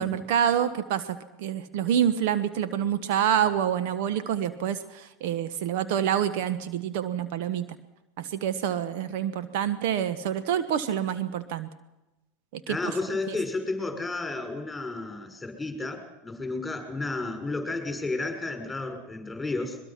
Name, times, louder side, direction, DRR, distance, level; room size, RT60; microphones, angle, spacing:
voice 1, 0.0-7.8 8.2-11.7 12.5-12.8 13.3-13.4, right 9 dB, 65° right, 12 dB, 1.1 m, -27 dB
voice 2, 12.7-19.8, left 3 dB, 10° left, 4 dB, 5.7 m, -32 dB
22.0 x 22.0 x 5.9 m, 1.0 s
hypercardioid pair, 90°, 0 cm